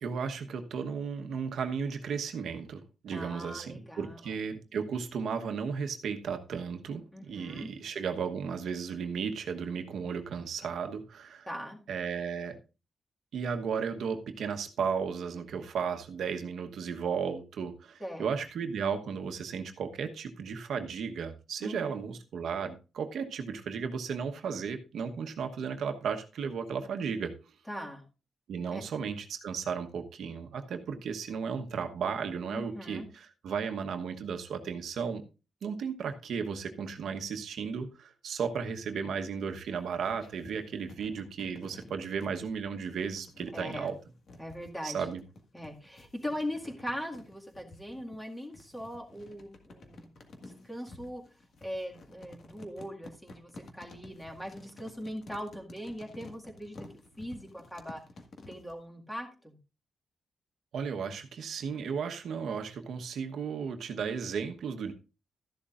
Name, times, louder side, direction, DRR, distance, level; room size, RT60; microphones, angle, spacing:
voice 1, 0.0-11.5 11.9-12.6 13.3-27.3 28.5-35.2 35.6-44.0 44.8-45.2 60.7-64.9, right 6 dB, 75° right, 1.1 m, -34 dB
voice 2, 3.1-4.2 7.1-7.7 11.5-11.8 18.0-18.3 21.6-21.8 27.7-28.0 28.7-28.8 32.5-33.1 43.5-43.9 44.4-45.1 45.5-51.2 51.6-56.8 57.2-58.0 58.5-59.6, equal, 10° left, 2.0 m, -40 dB
sound 1, 39.7-58.8, left 2 dB, 55° left, 1.7 m, -52 dB
13.0 x 11.0 x 2.5 m
wide cardioid pair, 150°, 0 cm